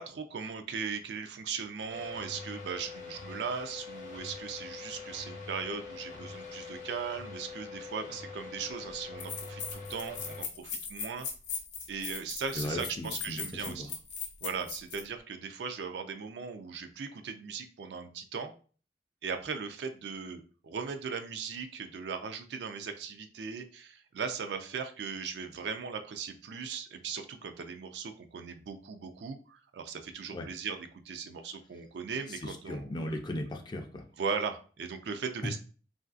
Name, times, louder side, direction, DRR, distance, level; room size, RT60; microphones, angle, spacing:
voice 1, 0.0-11.3 11.9-13.9 14.4-18.5 19.2-32.9 34.2-35.6, right 5 dB, 75° right, 7 dB, 0.4 m, -38 dB
sound 1, 1.9-10.4, left 4 dB, 45° left, 0.8 m, -44 dB
sound 2, 8.6-8.7 9.2-15.1, left 6 dB, 85° left, 0.6 m, -39 dB
voice 2, 12.5-13.8 30.3-30.5 32.3-34.0, left 1 dB, 25° left, 4 dB, 0.4 m, -37 dB
3.1 x 2.5 x 2.4 m, 0.40 s
head